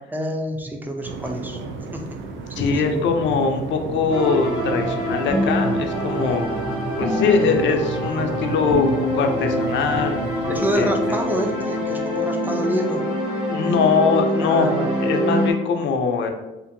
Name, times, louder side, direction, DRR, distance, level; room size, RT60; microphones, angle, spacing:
voice 1, 0.1-1.6 1.9-2.0 2.6-3.0 10.5-13.0 14.4-15.0, equal, 10° right, 3 dB, 0.4 m, -27 dB
sound 1, 1.0-12.9, right 4 dB, 75° right, 0.4 m, -32 dB
voice 2, 2.6-6.5 7.0-10.2 10.7-11.2 13.5-14.7 15.0-16.3, left 5 dB, 70° left, 5 dB, 0.5 m, -22 dB
sound 2, 4.1-15.5, equal, 25° right, 1.4 m, -25 dB
2.6 x 2.5 x 2.6 m, 1.0 s
cardioid pair, 90°, 20 cm